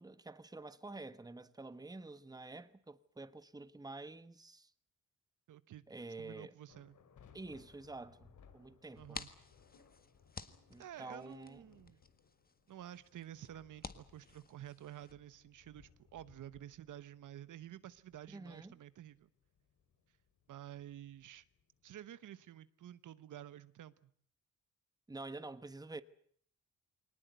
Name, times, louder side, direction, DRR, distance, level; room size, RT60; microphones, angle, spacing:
voice 1, 0.0-4.7 5.9-6.5 7.3-9.2 10.7-11.6 18.3-18.7 25.1-26.0, right 2 dB, 10° right, 1.2 m, -48 dB
voice 2, 5.5-5.8 6.2-6.9 9.0-9.3 10.8-12.0 12.7-19.3 20.5-21.4 21.8-24.1, right 11 dB, 80° right, 1.1 m, -51 dB
sound 1, 6.7-22.0, left 6 dB, 75° left, 3.0 m, -66 dB
sound 2, 8.8-15.1, left 4 dB, 30° left, 1.7 m, -53 dB
23.0 x 19.5 x 9.3 m
cardioid pair, 105°, 31 cm